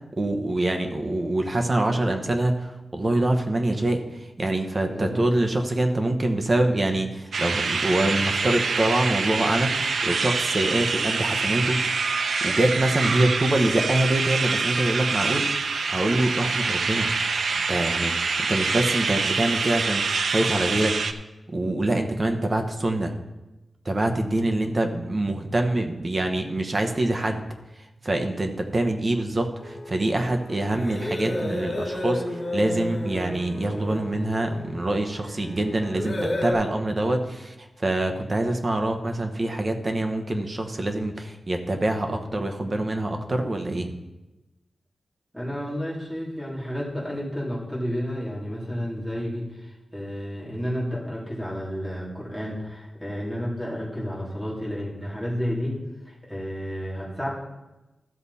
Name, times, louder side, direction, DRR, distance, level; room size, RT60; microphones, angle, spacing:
voice 1, 0.2-11.8 12.4-15.5 15.9-17.1 17.5-20.9 21.5-23.1 23.8-27.5 28.0-43.9, right 1 dB, 30° right, 4 dB, 1.0 m, -25 dB
voice 2, 4.8-5.3 13.1-13.2 45.3-55.7 56.0-57.3, equal, ahead, -6 dB, 3.1 m, -31 dB
sound 1, 7.3-21.1, right 4 dB, 75° right, 0.6 m, -26 dB
sound 2, 29.6-36.5, left 1 dB, 50° left, 2.6 m, -32 dB
13.5 x 6.9 x 4.2 m, 1.0 s
wide cardioid pair, 130°, 0 cm